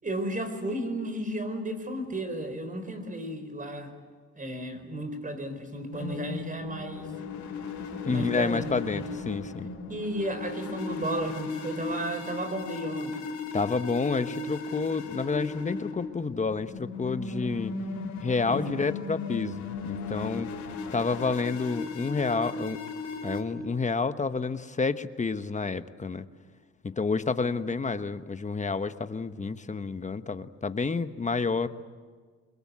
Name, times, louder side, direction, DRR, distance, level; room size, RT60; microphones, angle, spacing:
voice 1, 0.0-3.9 4.4-7.1 8.1-9.0 9.9-13.1 18.4-18.7, right 1 dB, 25° right, 9 dB, 4.5 m, -33 dB
sound 1, 5.9-23.4, left 4 dB, 65° left, 4.3 m, -37 dB
voice 2, 8.0-9.7 13.5-17.7 18.2-20.5 20.9-22.8 23.2-26.2 26.8-31.7, left 4 dB, 25° left, 11 dB, 1.2 m, -29 dB
24.5 x 21.5 x 9.7 m, 1.5 s
cardioid pair, 90°, 30 cm